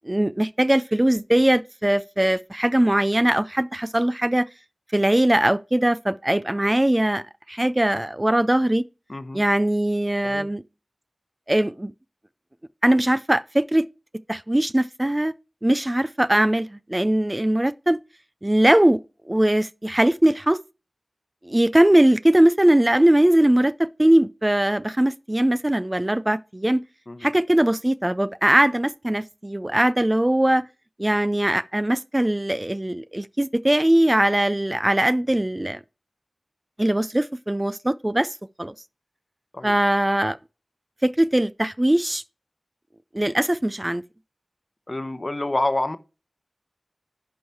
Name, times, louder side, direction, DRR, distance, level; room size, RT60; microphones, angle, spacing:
voice 1, 0.1-4.5 4.9-7.2 7.5-8.8 9.3-10.6 11.5-11.9 12.8-13.8 14.3-15.3 15.6-18.0 18.4-19.0 19.3-20.6 21.4-26.8 27.2-30.6 31.0-35.8 36.8-38.7 39.6-40.4 41.0-42.2 43.1-44.0, right 1 dB, 25° right, 0.3 m, -20 dB
voice 2, 9.1-9.4 10.2-10.5 27.1-27.3 39.5-39.8 44.9-46.0, left 2 dB, 45° left, 0.8 m, -27 dB
10.5 x 4.8 x 4.5 m
wide cardioid pair, 45°, 0 cm